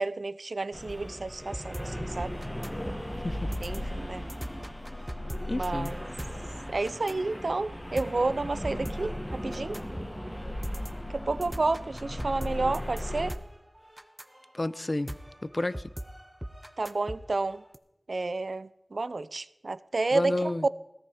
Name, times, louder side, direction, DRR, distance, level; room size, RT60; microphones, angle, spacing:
voice 1, 0.0-2.3 3.6-4.3 5.5-6.0 6.7-9.8 11.1-13.4 16.8-17.6 18.1-20.5, right 3 dB, 70° right, 16 dB, 0.6 m, -31 dB
sound 1, 0.7-13.3, left 1 dB, 10° left, 1.7 m, -37 dB
sound 2, 0.9-17.8, equal, 10° right, 1.1 m, -42 dB
voice 2, 5.5-5.9 14.5-15.9 20.1-20.7, left 2 dB, 40° left, 17 dB, 0.6 m, -31 dB
17.5 x 13.5 x 5.0 m, 0.86 s
wide cardioid pair, 55°, 0 cm